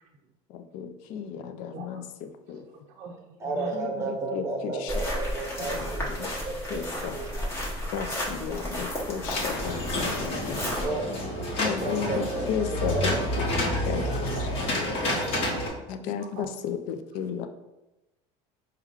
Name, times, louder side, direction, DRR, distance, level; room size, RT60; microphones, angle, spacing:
voice 1, 0.5-2.8 3.7-5.0 5.6-6.4 6.7-7.2 7.9-10.6 11.6-14.5 14.7-14.9 15.9-17.5, left 7 dB, 65° left, 8 dB, 0.4 m, -34 dB
voice 2, 2.7-4.3 6.9-7.0 8.6-8.7 9.1-9.2 9.7-9.8 10.5-10.7 14.2-14.4 15.0-16.1 16.3-16.5, right 4 dB, 55° right, 1 dB, 0.5 m, -45 dB
voice 3, 3.4-8.1 10.8-11.4 11.8-12.5 12.7-13.2 13.8-15.0, right 3 dB, 20° right, 1 dB, 0.8 m, -34 dB
sound 1, 4.9-10.9, equal, 20° left, 1.0 m, -33 dB
sound 2, 9.2-15.7, left 1 dB, 45° left, 1.0 m, -29 dB
4.7 x 2.2 x 3.5 m, 0.98 s
cardioid pair, 135°, 14 cm